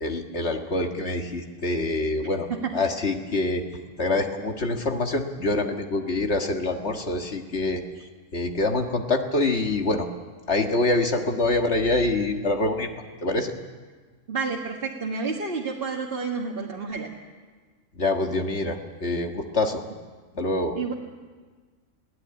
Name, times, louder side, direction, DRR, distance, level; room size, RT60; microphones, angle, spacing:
voice 1, 0.0-2.5 2.7-3.6 4.0-7.8 8.3-10.1 10.5-12.9 13.2-13.5 18.0-19.8 20.4-20.8, left 2 dB, 50° left, 4 dB, 1.8 m, -25 dB
voice 2, 14.3-17.1 20.7-20.9, right 4 dB, 40° right, -2 dB, 1.8 m, -30 dB
23.0 x 16.0 x 8.8 m, 1.4 s
omnidirectional pair, 1.5 m